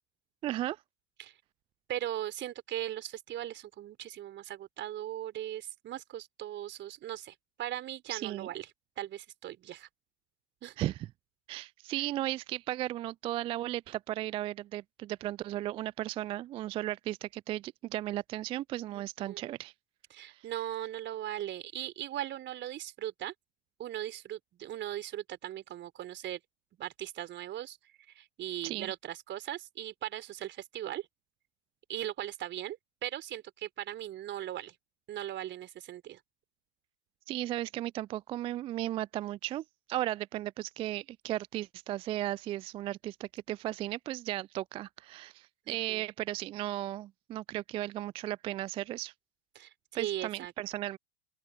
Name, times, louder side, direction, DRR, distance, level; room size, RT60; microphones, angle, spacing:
voice 1, 0.4-0.8 8.1-8.5 10.8-11.1 11.5-19.7 20.3-20.5 28.6-28.9 37.3-49.1 49.9-51.0, right 14 dB, 15° right, 0.3 m, -35 dB
voice 2, 1.9-8.7 9.0-9.9 10.6-10.8 18.9-19.5 20.1-23.3 23.8-26.4 26.8-27.8 28.1-31.1 31.9-34.7 35.1-36.2 45.7-46.1 49.5-50.5, right 12 dB, 30° right, 4.0 m, -39 dB
open air
figure-of-eight pair, 85°, 35 cm